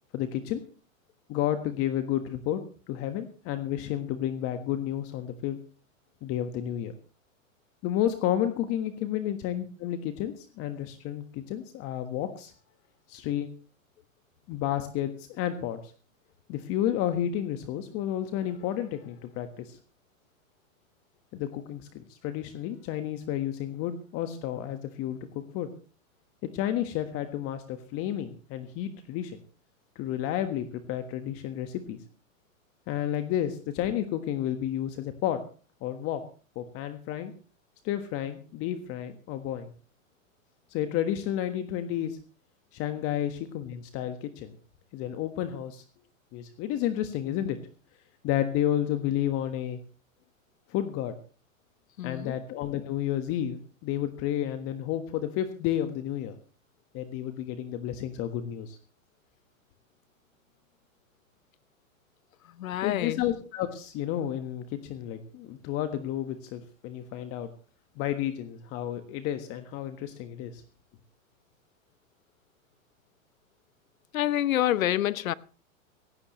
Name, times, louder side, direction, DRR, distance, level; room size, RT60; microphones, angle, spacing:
voice 1, 0.1-0.6 1.3-2.6 2.9-5.6 6.2-6.9 7.8-12.5 13.1-13.5 14.5-15.8 16.5-19.8 21.3-25.7 26.4-29.4 29.9-32.0 32.9-35.4 35.8-36.2 36.5-37.3 37.8-39.7 40.7-42.2 42.7-44.5 44.9-45.8 46.3-47.6 48.2-49.8 50.7-51.1 52.0-56.4 56.9-58.8 62.8-67.5 68.0-70.6, left 11 dB, 35° left, 1.4 m, -31 dB
voice 2, 52.0-52.4 62.6-63.2 74.1-75.3, left 13 dB, 80° left, 0.9 m, -27 dB
17.0 x 16.0 x 3.1 m
hypercardioid pair, 130°, 40 cm